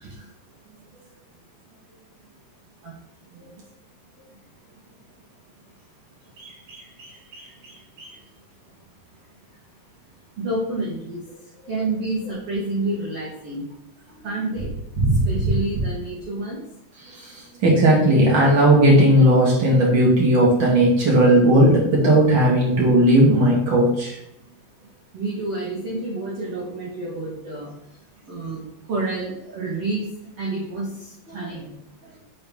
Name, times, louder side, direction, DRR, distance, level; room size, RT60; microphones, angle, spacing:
voice 1, 6.4-6.8 7.3-7.4 8.0-8.1 15.0-15.3 17.2-17.3 17.6-24.2, right 1 dB, 50° right, -4 dB, 1.4 m, -16 dB
voice 2, 10.4-11.2 11.7-13.6 14.2-14.7 15.2-16.6 25.1-27.7 28.3-28.6 28.9-30.1 30.4-30.9 31.3-31.7, right 2 dB, 85° right, -5 dB, 1.3 m, -28 dB
6.7 x 4.3 x 3.6 m, 0.78 s
omnidirectional pair, 4.8 m